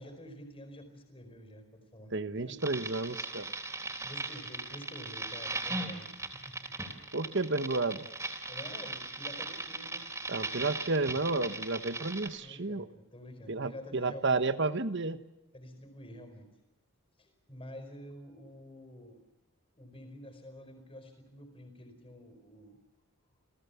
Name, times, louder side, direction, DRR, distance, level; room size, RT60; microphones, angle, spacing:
voice 1, 0.0-2.1 2.4-2.7 3.5-6.9 7.3-7.6 8.5-10.1 12.4-14.7 15.5-16.5 17.2-19.2 19.7-22.8, equal, 25° left, 8 dB, 4.8 m, -49 dB
voice 2, 2.1-3.5 7.1-8.1 10.3-12.8 13.5-15.2, right 3 dB, 55° right, 13 dB, 1.2 m, -31 dB
sound 1, 2.6-12.3, right 3 dB, 15° right, 3.6 m, -38 dB
29.5 x 18.0 x 7.1 m, 0.99 s
head